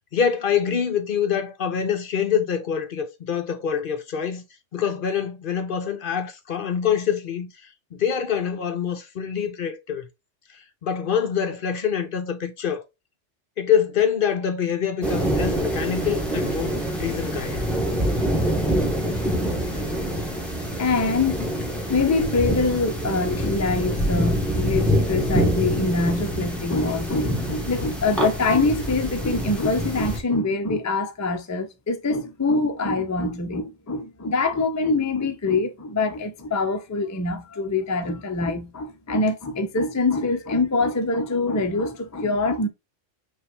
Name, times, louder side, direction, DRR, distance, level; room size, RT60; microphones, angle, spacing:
voice 1, 0.1-4.4 4.7-7.5 7.9-10.1 10.8-12.8 13.6-17.7 24.8-24.9, left 8 dB, 55° left, 0.7 m, -25 dB
sound 1, 15.0-30.2, equal, ahead, 1.0 m, -25 dB
voice 2, 20.8-21.5 21.9-42.7, left 3 dB, 30° left, 0.3 m, -24 dB
5.3 x 2.4 x 3.2 m
omnidirectional pair, 1.2 m